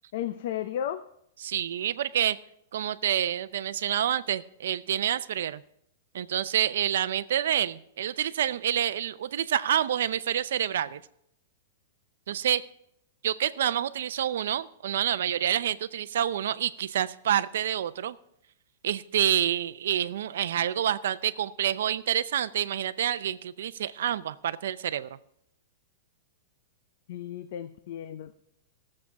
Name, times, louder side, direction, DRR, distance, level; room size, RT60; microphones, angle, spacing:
voice 1, 0.1-1.0 27.1-28.3, left 10 dB, 50° left, 12 dB, 0.5 m, -34 dB
voice 2, 1.4-2.4 2.7-5.6 6.1-11.0 12.3-12.6 13.2-18.2 18.8-25.1, right 10 dB, 70° right, 15 dB, 0.6 m, -28 dB
17.5 x 7.5 x 4.7 m, 0.75 s
supercardioid pair, 170°, 0 cm